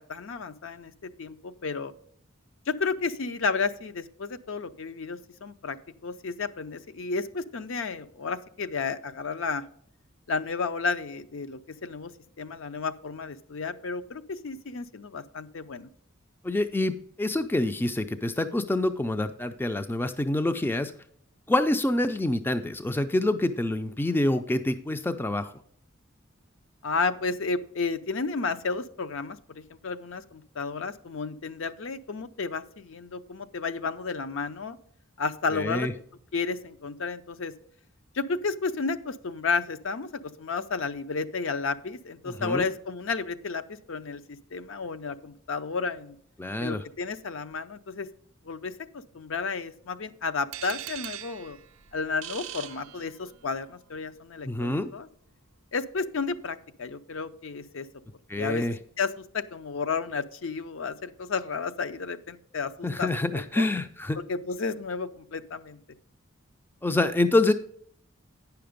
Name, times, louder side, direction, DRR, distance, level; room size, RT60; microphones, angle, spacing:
voice 1, 0.1-1.9 2.7-5.8 6.0-9.6 10.3-12.1 12.4-15.9 26.8-34.8 35.2-35.9 36.3-37.5 38.1-46.2 46.6-48.1 48.4-51.6 51.9-55.1 55.7-57.9 58.4-58.6 59.0-63.1 63.3-63.7 64.1-65.8, left 4 dB, 65° left, 11 dB, 0.5 m, -32 dB
voice 2, 16.4-20.9 21.5-25.5 35.5-35.9 42.3-42.6 46.4-46.8 54.5-54.9 58.3-58.8 62.8-64.2 66.8-67.5, left 2 dB, 10° left, 9 dB, 0.3 m, -26 dB
sound 1, 50.5-53.5, right 13 dB, 75° right, 0.5 m, -41 dB
9.4 x 5.8 x 5.1 m, 0.63 s
head